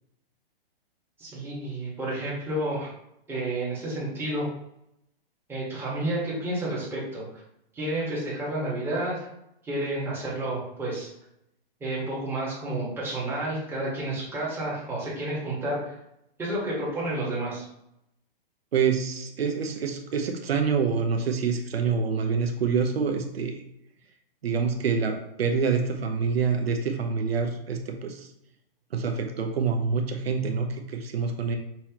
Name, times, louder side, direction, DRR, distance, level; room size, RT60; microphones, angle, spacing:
voice 1, 1.2-2.9 3.3-4.5 5.5-7.2 7.7-9.3 9.6-11.1 11.8-15.9 16.4-17.6, right 1 dB, 5° right, -7 dB, 1.4 m, -30 dB
voice 2, 18.7-23.6 24.4-28.3 28.9-31.6, right 5 dB, 90° right, 4 dB, 0.8 m, -26 dB
5.5 x 3.0 x 2.9 m, 0.79 s
hypercardioid pair, 150°, 30 cm